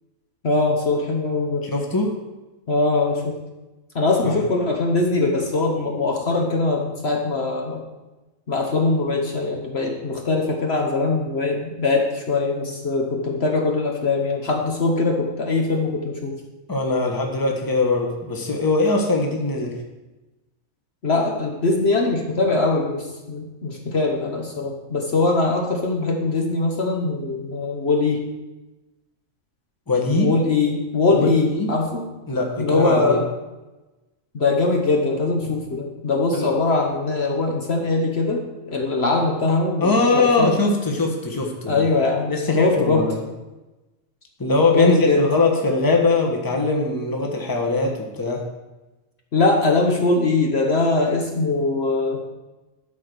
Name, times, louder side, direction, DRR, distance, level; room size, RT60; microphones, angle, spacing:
voice 1, 0.4-1.7 2.7-3.4 3.9-7.8 8.5-16.3 21.0-28.2 30.2-32.1 32.6-33.2 34.3-38.4 38.7-40.5 41.7-43.1 44.7-45.2 49.3-52.2, left 3 dB, 50° left, 1 dB, 1.4 m, -21 dB
voice 2, 1.6-2.1 4.2-4.4 16.7-19.8 29.9-30.3 31.1-31.7 32.3-33.2 36.3-36.5 39.8-41.8 42.3-43.2 44.4-48.4, left 3 dB, 15° left, 1 dB, 1.3 m, -21 dB
12.0 x 4.6 x 6.9 m, 1.1 s
omnidirectional pair, 1.4 m